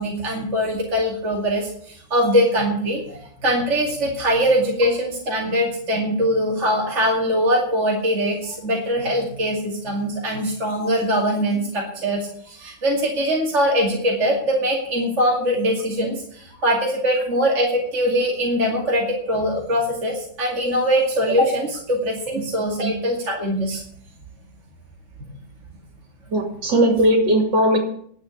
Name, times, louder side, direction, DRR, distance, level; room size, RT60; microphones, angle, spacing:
voice 1, 0.0-23.8, equal, 40° right, -2 dB, 2.7 m, -22 dB
voice 2, 26.3-27.8, right 1 dB, 70° right, 2 dB, 3.3 m, -18 dB
11.0 x 7.9 x 9.8 m, 0.63 s
omnidirectional pair, 2.0 m